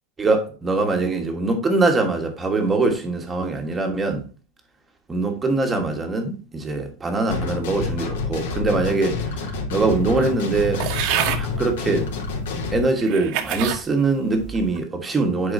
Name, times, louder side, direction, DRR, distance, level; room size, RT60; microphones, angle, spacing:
voice 1, 0.2-4.3 5.1-10.9 11.3-12.1 12.7-15.5, right 3 dB, 10° right, 1.4 m, -23 dB
sound 1, 7.3-12.8, left 4 dB, 90° left, 3.0 m, -28 dB
sound 2, 10.8-11.4 12.2-12.3 13.0-13.8 14.4-14.8, right 10 dB, 45° right, 1.2 m, -26 dB
10.5 x 4.8 x 2.7 m
supercardioid pair, 170°, 0 cm